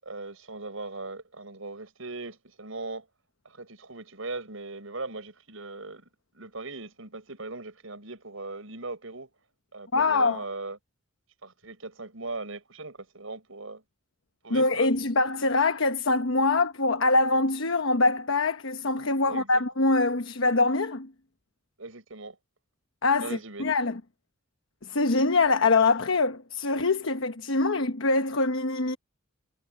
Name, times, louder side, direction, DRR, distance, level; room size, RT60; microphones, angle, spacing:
voice 1, 0.0-3.1 3.4-6.1 6.3-9.3 9.7-10.8 11.4-13.8 14.4-14.9 19.3-19.6 21.8-22.4 23.2-23.7, right 3 dB, 85° right, 6.0 m, -39 dB
voice 2, 9.9-10.4 14.5-21.1 23.0-24.0 24.8-29.0, left 3 dB, 75° left, 1.1 m, -24 dB
head